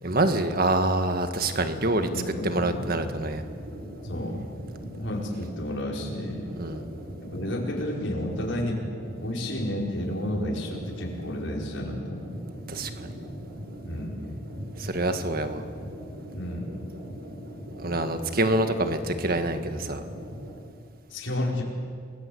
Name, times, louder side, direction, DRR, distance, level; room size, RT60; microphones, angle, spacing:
voice 1, 0.0-2.1 2.4-3.4 6.6-6.8 12.7-13.1 14.8-15.6 17.8-20.0, right 2 dB, 45° right, 8 dB, 1.8 m, -26 dB
sound 1, 1.5-20.5, equal, 70° right, 7.8 m, -40 dB
voice 2, 2.1-2.9 4.0-4.4 5.0-6.5 7.3-8.8 9.2-12.3 13.8-14.2 16.3-16.8 21.1-21.6, left 1 dB, 65° left, -1 dB, 5.0 m, -31 dB
29.5 x 21.0 x 8.5 m, 2.1 s
head